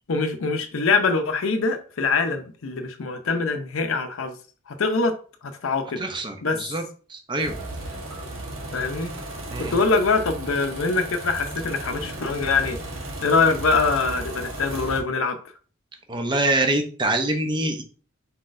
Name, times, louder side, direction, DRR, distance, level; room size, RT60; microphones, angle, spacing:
voice 1, 0.1-4.3 4.8-5.1 5.6-6.1 6.4-6.6 8.7-9.1 9.7-12.8 13.2-15.4, left 4 dB, 85° left, 0.6 m, -23 dB
voice 2, 6.0-6.8 7.1-7.5 9.5-9.7 16.1-17.8, right 2 dB, 25° right, 0.6 m, -25 dB
sound 1, 7.4-15.0, right 1 dB, 75° right, 1.2 m, -35 dB
4.3 x 3.9 x 2.5 m
head